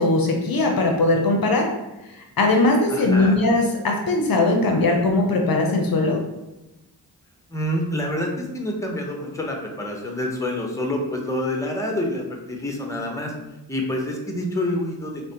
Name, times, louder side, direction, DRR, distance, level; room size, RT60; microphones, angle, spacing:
voice 1, 0.0-1.7 2.1-6.2, left 2 dB, 55° left, 1 dB, 0.6 m, -20 dB
voice 2, 2.9-3.4 7.5-13.3 13.7-15.3, left 1 dB, 5° left, 1 dB, 0.8 m, -27 dB
4.7 x 2.1 x 2.8 m, 0.98 s
cardioid pair, 45°, 42 cm